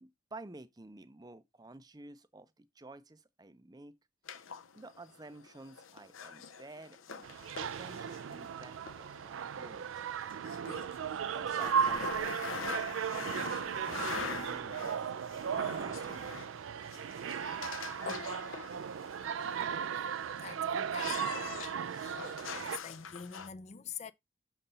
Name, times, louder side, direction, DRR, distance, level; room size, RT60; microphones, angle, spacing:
voice 1, 0.0-4.0 4.7-7.3 7.6-9.9 11.3-16.2, right 2 dB, 20° right, 0.5 m, -52 dB
sound 1, 4.3-23.5, left 6 dB, 85° left, 0.8 m, -45 dB
sound 2, 7.2-22.8, right 7 dB, 75° right, 0.4 m, -36 dB
voice 2, 20.4-21.7 22.0-22.2 22.6-24.1, left 7 dB, 35° left, 0.4 m, -46 dB
6.6 x 4.0 x 5.5 m
head